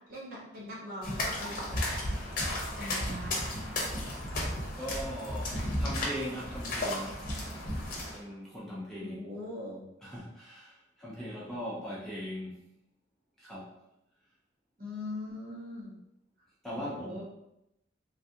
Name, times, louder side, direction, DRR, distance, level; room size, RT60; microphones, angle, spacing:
voice 1, 0.1-1.8 2.8-3.4 9.0-9.8 14.8-16.0 16.7-17.2, left 1 dB, 50° right, -5 dB, 1.0 m, -41 dB
sound 1, 1.0-8.2, left 1 dB, 45° left, 0.8 m, -34 dB
voice 2, 4.7-7.3 8.1-9.2 10.0-12.6 13.4-13.7 16.6-17.2, equal, ahead, -7 dB, 0.6 m, -40 dB
3.2 x 2.4 x 2.7 m, 0.85 s
head